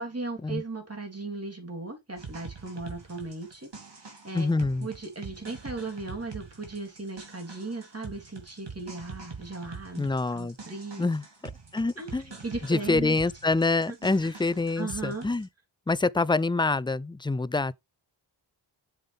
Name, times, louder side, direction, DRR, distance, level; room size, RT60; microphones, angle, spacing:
voice 1, 0.0-10.1 10.3-11.1 12.0-13.2 13.9-14.0 14.2-14.3 14.8-15.3, right 3 dB, 30° right, 3.5 m, -37 dB
sound 1, 2.2-15.4, right 4 dB, 60° right, 2.9 m, -45 dB
voice 2, 4.3-4.9 10.0-10.6 11.0-11.2 11.7-12.2 12.7-15.5 15.9-17.7, left 3 dB, 10° left, 0.4 m, -26 dB
7.3 x 7.3 x 3.5 m
cardioid pair, 50°, 47 cm